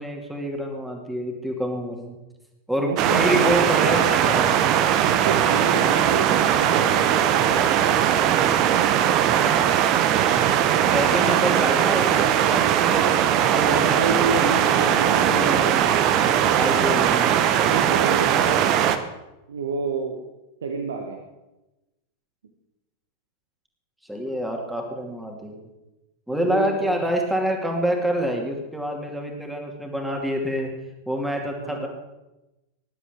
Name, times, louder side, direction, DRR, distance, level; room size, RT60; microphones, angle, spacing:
voice 1, 0.0-2.2 2.7-4.6 10.9-14.6 14.9-15.8 16.6-17.5 24.1-25.5 26.3-30.7 31.1-31.9, equal, 5° right, 1 dB, 2.5 m, -27 dB
voice 2, 2.8-4.0 5.0-8.2 13.6-15.5 17.6-18.6 19.5-20.2 20.6-21.2 26.3-27.0 31.6-31.9, right 4 dB, 65° right, 4 dB, 1.3 m, -29 dB
sound 1, 3.0-19.0, right 10 dB, 40° right, 1.0 m, -20 dB
20.0 x 11.0 x 3.7 m, 1.0 s
figure-of-eight pair, 90°, 0 cm